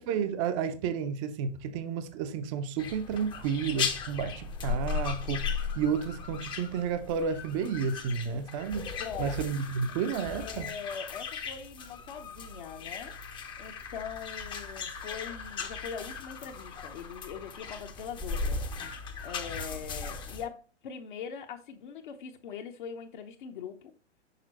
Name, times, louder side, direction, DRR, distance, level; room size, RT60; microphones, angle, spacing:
voice 1, 0.0-8.8 9.2-10.7, right 6 dB, 30° right, 0.7 m, -31 dB
sound 1, 2.8-20.5, left 5 dB, 15° left, 0.7 m, -37 dB
voice 2, 9.0-9.4 10.4-23.9, left 7 dB, 45° left, 0.9 m, -42 dB
6.7 x 5.7 x 2.9 m
figure-of-eight pair, 110°, 34 cm